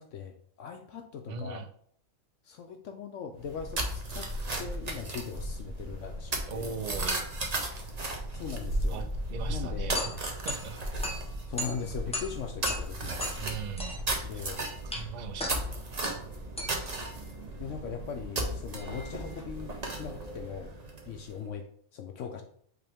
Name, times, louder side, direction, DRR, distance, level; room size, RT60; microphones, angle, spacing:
voice 1, 0.0-1.6 2.4-4.3 4.6-6.8 8.3-9.0 9.5-10.0 11.5-13.2 14.2-14.6 17.6-20.7 21.1-21.7 21.9-22.4, left 6 dB, 70° left, 5 dB, 0.9 m, -40 dB
voice 2, 1.3-1.7 6.5-7.3 8.9-10.2 10.4-10.8 13.4-14.3 14.9-16.0, right 6 dB, 65° right, 8 dB, 0.4 m, -40 dB
sound 1, 3.4-21.3, right 1 dB, 35° right, 0.9 m, -35 dB
sound 2, 9.9-18.6, left 1 dB, 5° left, 0.7 m, -39 dB
8.1 x 3.4 x 3.4 m, 0.62 s
omnidirectional pair, 1.4 m